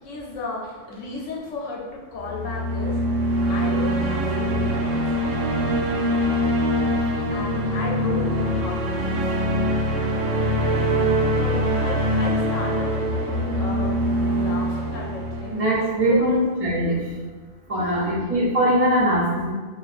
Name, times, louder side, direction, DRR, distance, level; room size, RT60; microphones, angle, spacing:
voice 1, 0.0-3.0 3.5-5.1 7.3-9.6 11.4-15.5 16.0-16.4 17.7-18.1, left 3 dB, 80° left, -3 dB, 0.9 m, -34 dB
sound 1, 2.2-16.4, equal, 80° right, 0.9 m, -23 dB
voice 2, 15.5-17.0 17.7-19.5, equal, 30° right, -7 dB, 0.8 m, -21 dB
2.4 x 2.3 x 4.0 m, 1.4 s
omnidirectional pair, 1.3 m